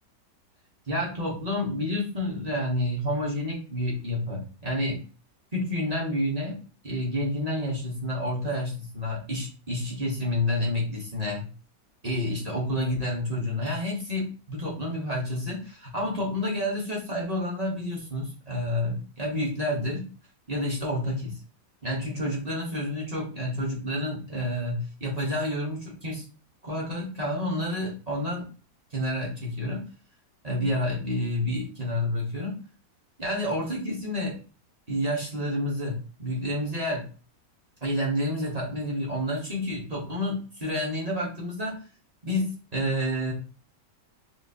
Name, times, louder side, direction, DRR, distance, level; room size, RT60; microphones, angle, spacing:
voice 1, 0.9-5.0 5.5-6.6 6.8-11.4 12.0-20.1 20.5-21.4 21.8-26.2 26.6-28.5 28.9-29.8 30.4-32.6 33.2-34.4 34.9-37.1 37.8-41.8 42.2-43.3, left 1 dB, 35° right, -4 dB, 0.7 m, -29 dB
3.8 x 2.4 x 2.5 m, 0.37 s
omnidirectional pair, 1.9 m